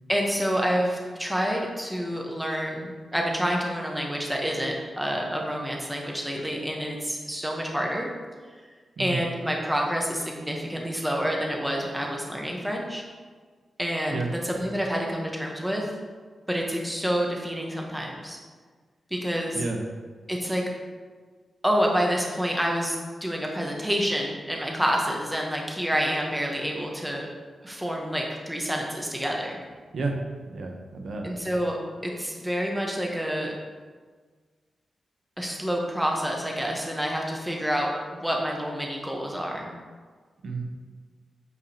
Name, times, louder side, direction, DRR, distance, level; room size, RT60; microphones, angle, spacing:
voice 1, 0.1-8.1 9.0-13.0 13.8-15.8 16.5-18.4 19.1-19.6 20.3-20.6 21.6-23.0 23.2-27.3 27.6-29.6 31.2-33.5 35.4-39.7, equal, 5° right, -1 dB, 0.9 m, -28 dB
voice 2, 30.5-31.3 40.4-40.6, right 3 dB, 70° right, 2 dB, 0.8 m, -31 dB
8.0 x 4.9 x 2.8 m, 1.5 s
wide cardioid pair, 135°, 0 cm